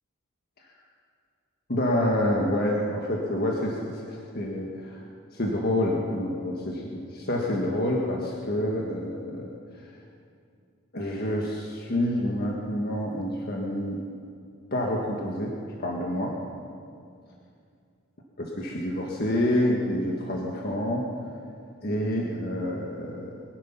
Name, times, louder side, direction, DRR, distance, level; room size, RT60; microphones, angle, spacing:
voice 1, 1.7-5.0 5.3-9.5 10.9-14.0 14.7-15.5 15.8-16.4 18.4-21.1 21.8-23.3, left 1 dB, 50° left, -1 dB, 1.5 m, -28 dB
22.0 x 11.0 x 5.8 m, 2.3 s
head